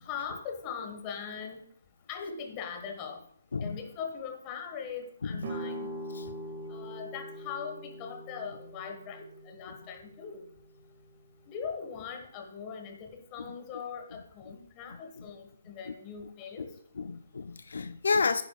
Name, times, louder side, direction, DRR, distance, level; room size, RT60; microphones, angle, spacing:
voice 1, 0.0-1.6 2.1-3.2 3.6-5.9 6.7-10.4 11.5-16.7, left 6 dB, 25° left, 1.4 m, -40 dB
sound 1, 5.4-11.1, equal, 50° right, 1.7 m, -42 dB
voice 2, 17.0-18.4, left 4 dB, 80° left, 0.4 m, -30 dB
10.0 x 9.9 x 2.3 m
hypercardioid pair, 155°, 0 cm